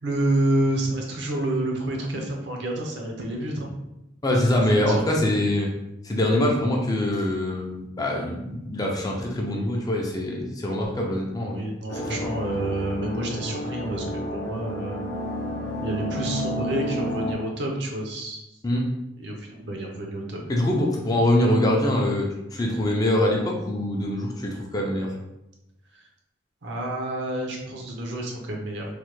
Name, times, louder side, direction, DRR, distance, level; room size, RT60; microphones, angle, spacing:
voice 1, 0.0-3.7 4.9-5.1 11.5-15.0 15.8-18.4 19.2-20.4 25.9-26.0 26.6-28.9, right 1 dB, 60° right, 0 dB, 0.6 m, -29 dB
voice 2, 4.2-5.7 6.0-11.6 11.9-12.2 18.6-18.8 20.5-25.1, left 1 dB, 20° left, -1 dB, 0.4 m, -24 dB
sound 1, 11.9-17.3, left 1 dB, 80° left, 0.5 m, -31 dB
3.2 x 2.1 x 3.1 m, 0.90 s
head